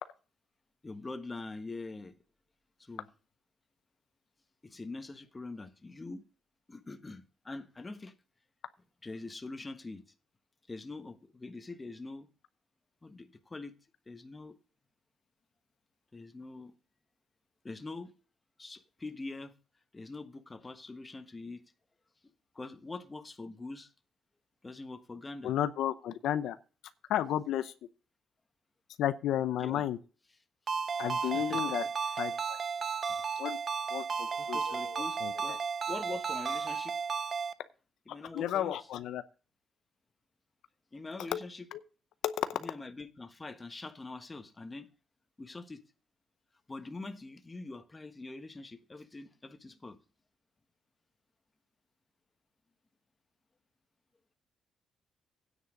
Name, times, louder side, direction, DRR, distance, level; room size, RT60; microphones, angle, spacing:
voice 1, 0.8-2.1 2.8-3.1 4.6-6.2 6.7-8.1 9.0-10.0 10.7-12.3 13.0-13.7 14.1-14.6 16.1-16.7 17.6-18.1 18.6-19.5 19.9-21.6 22.5-23.9 24.6-25.6 29.6-29.8 31.2-31.7 32.0-32.2 33.1-33.2 34.4-35.6 35.9-37.0 38.1-38.9 40.9-41.7 42.5-44.9 45.4-45.8 46.7-50.0, left 3 dB, 25° left, 1.3 m, -44 dB
voice 2, 25.4-26.6 27.1-27.7 29.0-30.0 31.0-31.8 32.2-32.6 33.4-33.6 33.9-35.6 38.3-39.2 41.3-41.4 42.2-42.6, left 11 dB, 80° left, 0.6 m, -32 dB
Ringtone, 30.7-37.5, right 5 dB, 40° right, 0.7 m, -34 dB
9.7 x 7.4 x 5.0 m
cardioid pair, 90°, 0 cm